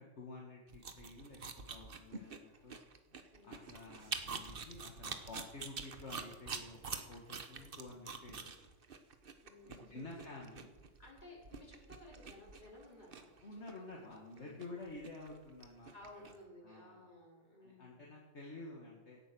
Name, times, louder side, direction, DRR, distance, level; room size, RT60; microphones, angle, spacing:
voice 1, 0.0-1.4 1.7-2.8 3.1-8.7 9.7-10.7 13.4-16.3 16.6-17.1 17.6-19.2, left 2 dB, 65° left, -2 dB, 2.2 m, -51 dB
sound 1, 0.7-16.4, right 5 dB, 50° right, 1.3 m, -46 dB
voice 2, 9.4-10.3 11.0-13.3 13.9-14.1 14.3-14.8 15.9-18.1, left 1 dB, 40° left, -4 dB, 5.0 m, -57 dB
17.0 x 9.0 x 6.3 m, 1.2 s
omnidirectional pair, 1.3 m